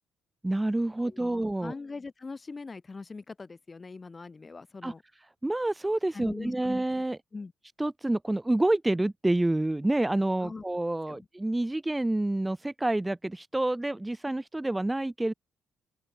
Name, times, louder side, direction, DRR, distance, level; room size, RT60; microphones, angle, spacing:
voice 1, 0.4-1.7 4.8-4.9 5.4-7.2 7.8-15.3, right 1 dB, 10° right, 0.3 m, -28 dB
voice 2, 1.0-5.0 6.1-6.8 7.3-7.5 10.4-10.6 11.1-11.3, left 4 dB, 30° left, 4.9 m, -42 dB
open air
cardioid pair, 90°, 0 cm